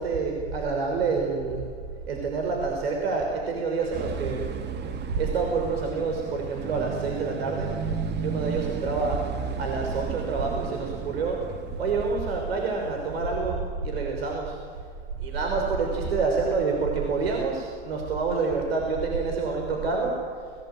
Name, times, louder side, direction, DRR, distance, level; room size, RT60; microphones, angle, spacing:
voice 1, 0.0-1.7 2.1-4.4 5.1-7.7 8.2-9.2 9.6-11.4 11.8-14.6 15.2-20.2, right 4 dB, 80° right, 1 dB, 5.8 m, -27 dB
sound 1, 3.9-13.3, right 6 dB, 35° right, 2.6 m, -35 dB
30.0 x 21.5 x 9.4 m, 2.1 s
hypercardioid pair, 95°, 30 cm